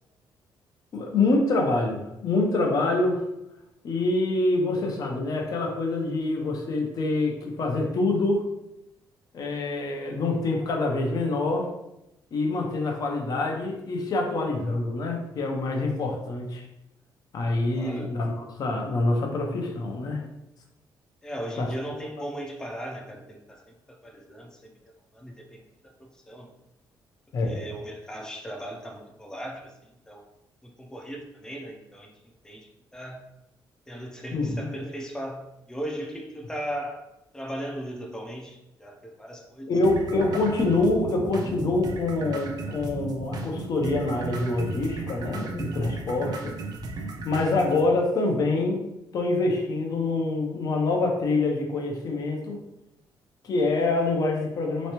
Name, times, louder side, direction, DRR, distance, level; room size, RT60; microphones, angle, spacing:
voice 1, 0.9-3.2 3.8-8.4 9.3-11.7 12.3-16.6 17.3-20.2 21.6-21.7 27.3-27.6 34.3-34.7 39.7-46.6 47.2-48.9 49.1-52.6 53.4-54.9, left 2 dB, 50° left, 1 dB, 0.7 m, -26 dB
voice 2, 17.7-18.1 21.2-24.7 25.1-26.5 27.4-30.2 30.8-32.1 32.4-33.2 33.9-37.1 37.3-39.7, equal, 10° left, 0 dB, 0.6 m, -37 dB
sound 1, 39.8-47.8, right 3 dB, 55° right, 0.6 m, -35 dB
3.3 x 3.1 x 2.9 m, 0.88 s
cardioid pair, 135°, 8 cm